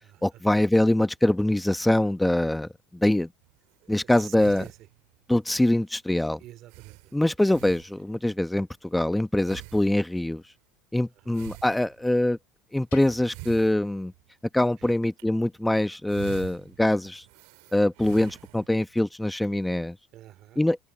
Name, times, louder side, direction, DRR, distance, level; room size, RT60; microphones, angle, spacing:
voice 1, 0.2-3.3 3.9-4.6 5.3-6.4 7.1-10.4 10.9-12.4 12.7-14.1 14.5-17.2 17.7-19.9 20.6-20.8, left 1 dB, 5° left, 1.2 m, -24 dB
sound 1, 3.4-3.8 4.4-5.3 5.8-5.9 6.2-6.3 6.7-8.3 9.4-10.4 11.3-12.3 13.2-14.5 14.9-15.2 15.8-18.9, right 30 dB, 70° right, 2.6 m, -46 dB
voice 2, 3.8-4.8 6.4-7.0 11.2-11.5 14.8-14.9 20.1-20.6, right 14 dB, 55° right, 2.8 m, -47 dB
Bell, 12.9-14.6, left 20 dB, 80° left, 5.6 m, -55 dB
open air
hypercardioid pair, 80°, 0 cm